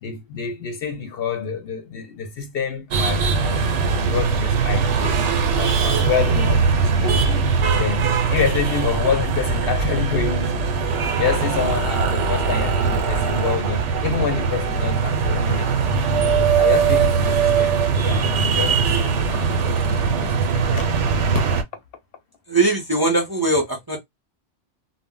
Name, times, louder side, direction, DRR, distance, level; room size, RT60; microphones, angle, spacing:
voice 1, 0.0-3.6 4.0-5.2 5.5-7.5 7.8-10.7 11.2-16.0 16.4-18.8 19.2-20.9 21.3-21.5, left 6 dB, 65° left, 0.7 m, -27 dB
sound 1, 2.9-21.6, right 5 dB, 85° right, 0.9 m, -20 dB
voice 2, 22.5-24.0, right 2 dB, 25° right, 0.5 m, -20 dB
2.1 x 2.0 x 3.7 m
omnidirectional pair, 1.2 m